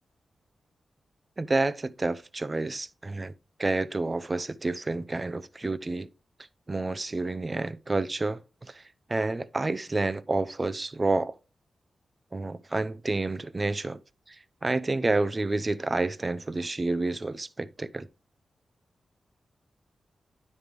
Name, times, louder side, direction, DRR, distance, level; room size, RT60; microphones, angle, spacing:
voice 1, 1.4-3.3 3.6-6.1 6.7-8.8 9.1-11.3 12.3-14.0 14.3-14.4 14.6-18.1, right 2 dB, 35° right, 0.6 m, -29 dB
9.4 x 5.3 x 3.1 m
supercardioid pair, 45°, 0 cm